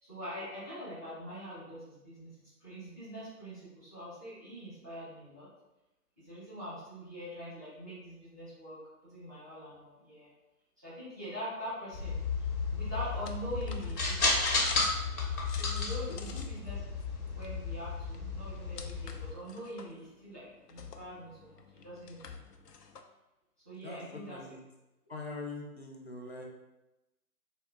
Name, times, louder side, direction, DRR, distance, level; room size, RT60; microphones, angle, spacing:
voice 1, 0.0-2.3 2.6-5.5 6.2-10.3 10.8-12.2 12.7-14.4 15.5-16.8 17.2-22.4 23.6-24.6, equal, 10° right, -13 dB, 0.8 m, -44 dB
sound 1, 11.9-19.3, left 3 dB, 65° left, 1.0 m, -33 dB
sound 2, 13.0-23.0, left 5 dB, 85° left, 0.6 m, -49 dB
voice 2, 23.8-24.6 25.1-26.4, left 3 dB, 45° left, 0 dB, 0.6 m, -42 dB
3.6 x 2.4 x 3.4 m, 0.98 s
figure-of-eight pair, 145°, 47 cm